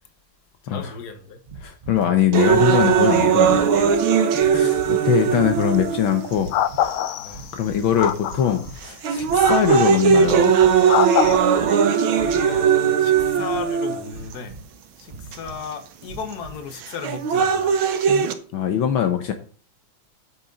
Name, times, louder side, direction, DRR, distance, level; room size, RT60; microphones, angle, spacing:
voice 1, 0.6-1.4 4.3-4.7 7.2-7.5 12.0-14.6 15.0-17.8, left 5 dB, 50° left, 1.8 m, -35 dB
sound 1, 1.5-2.1 2.4-3.0 3.4-4.0 4.4-5.0 5.3-5.9 6.3-7.0 7.3-7.9 8.2-8.9 9.2-9.8 10.2-10.8 11.2-11.8 12.1-12.7 13.1-13.7 14.1-14.7 15.1-15.6 16.0-16.6, right 2 dB, 30° right, 1.2 m, -41 dB
voice 2, 1.6-3.6 4.5-6.5 7.5-10.5 18.5-19.3, left 9 dB, 75° left, 1.7 m, -22 dB
sound 2, 2.3-6.3 7.1-7.2 8.0-8.3 8.8-14.3 15.3-15.4 16.8-18.3, right 7 dB, 75° right, 1.8 m, -19 dB
sound 3, 5.6-5.8 6.5-7.5 8.0-8.6 9.4-10.0 10.9-11.4, left 11 dB, 90° left, 1.5 m, -24 dB
8.9 x 7.4 x 4.0 m
omnidirectional pair, 2.3 m